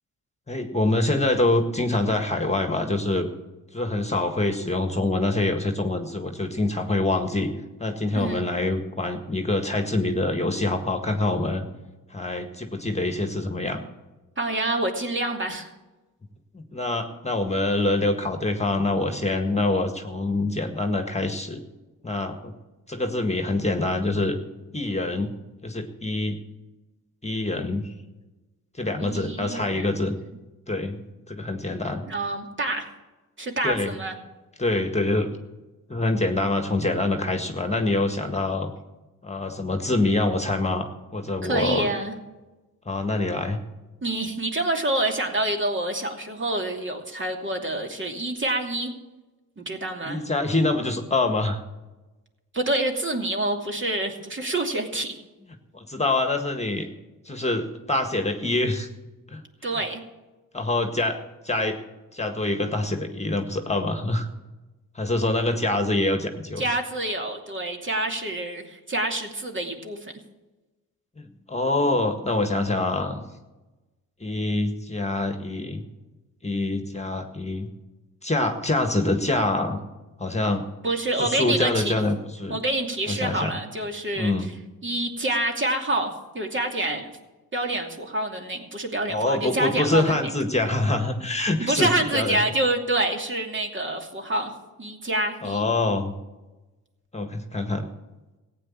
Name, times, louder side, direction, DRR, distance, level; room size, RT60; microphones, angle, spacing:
voice 1, 0.5-3.3 3.7-7.5 7.8-11.7 12.1-13.8 16.5-21.6 22.0-22.5 22.9-24.4 24.7-25.3 25.6-26.4 27.2-27.9 28.8-30.2 30.7-32.0 33.6-33.9 34.6-35.3 35.9-38.7 39.2-40.9 41.1-41.9 42.9-43.6 50.1-51.6 55.7-56.8 57.3-58.9 59.3-59.4 60.5-61.8 62.1-64.3 65.0-66.7 71.5-73.2 74.2-75.8 76.4-77.7 78.2-79.8 80.2-80.6 81.2-82.6 83.1-83.6 84.2-84.5 89.1-92.4 95.4-96.1 97.1-97.9, left 2 dB, 20° left, 6 dB, 1.7 m, -25 dB
voice 2, 8.1-8.4 14.4-15.7 29.0-29.9 32.1-32.9 33.4-34.2 41.4-42.1 44.0-48.9 49.6-50.2 52.5-55.2 59.6-60.0 66.6-70.1 80.8-81.9 82.5-84.5 84.8-87.1 87.5-90.3 91.6-94.5 94.8-95.7, right 1 dB, 35° right, 3 dB, 2.6 m, -27 dB
15.0 x 9.1 x 7.3 m, 1.1 s
cardioid pair, 65°, 35 cm